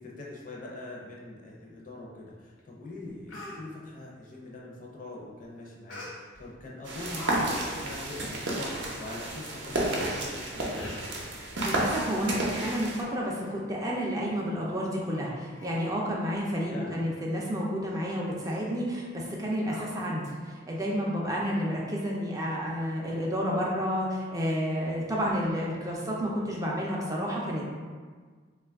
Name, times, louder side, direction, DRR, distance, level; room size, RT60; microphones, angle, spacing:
voice 1, 0.0-11.0 16.7-17.1, left 2 dB, 40° left, -3 dB, 0.5 m, -43 dB
Speech, 2.6-2.7 3.0-3.6 5.9-6.5 6.9-7.4 7.7-7.9 8.4-8.5 8.7-8.9 9.6-9.7 10.4-10.5 10.8-11.1 11.8-12.0 12.4-13.1 13.4-13.6 14.0-14.1 14.7-14.8 15.1-15.3 15.6-16.0 16.3-16.4 16.8-17.0 17.4-17.5 17.9-18.1 18.4-18.6 19.7-20.4 20.7-20.8, left 1 dB, 85° left, 0.8 m, -45 dB
sound 1, 6.8-13.0, right 1 dB, 65° right, 0.6 m, -31 dB
voice 2, 11.6-27.7, equal, 15° right, -3 dB, 0.4 m, -30 dB
2.9 x 2.3 x 3.4 m, 1.5 s
head